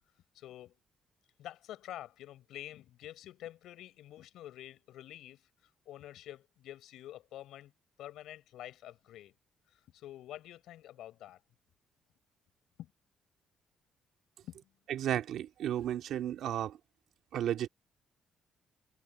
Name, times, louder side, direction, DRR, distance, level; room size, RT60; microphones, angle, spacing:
voice 1, 0.3-0.7 1.4-5.4 5.9-7.7 8.0-9.3 9.9-11.4 12.8-12.9 14.4-14.6, left 13 dB, 85° left, 6.5 m, -48 dB
voice 2, 14.9-16.8 17.3-17.7, right 11 dB, 75° right, 2.4 m, -33 dB
cardioid pair, 90°, 0 cm